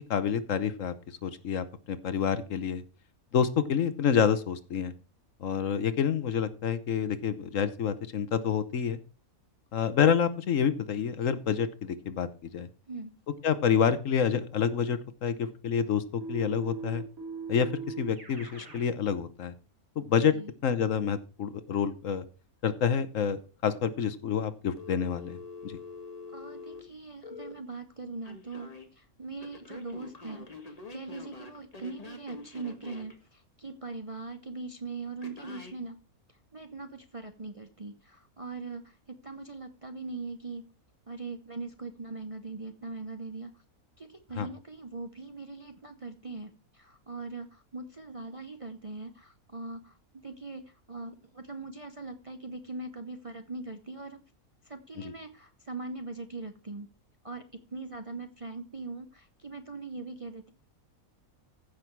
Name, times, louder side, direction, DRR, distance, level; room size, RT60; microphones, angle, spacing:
voice 1, 0.1-0.9 1.2-2.8 3.3-4.9 5.4-9.0 9.7-12.7 13.4-17.0 17.5-19.5 20.0-20.3 20.6-22.2 22.6-25.4 25.6-25.8 44.4-44.5 55.0-55.1, left 7 dB, 65° left, 13 dB, 1.2 m, -28 dB
voice 2, 12.9-13.2 20.3-20.5 26.3-36.0 36.5-40.7 41.1-43.6 44.0-54.2 54.6-56.9 57.2-60.5, right 3 dB, 30° right, 7 dB, 0.7 m, -41 dB
Keyboard (musical), 16.2-18.9, right 6 dB, 70° right, 3.5 m, -39 dB
Telephone, 24.8-27.5 28.2-28.9 29.4-33.1 35.2-35.8, left 3 dB, 25° left, 1.7 m, -45 dB
15.0 x 6.0 x 4.6 m, 0.34 s
omnidirectional pair, 1.5 m